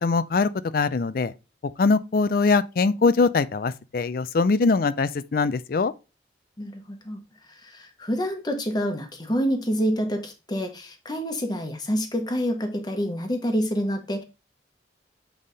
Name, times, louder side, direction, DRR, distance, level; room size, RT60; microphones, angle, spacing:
voice 1, 0.0-1.3 1.8-5.9, left 4 dB, 50° left, 0.4 m, -22 dB
voice 2, 6.6-7.2 7.6-14.2, equal, 25° left, 1.1 m, -27 dB
7.4 x 3.5 x 3.9 m
head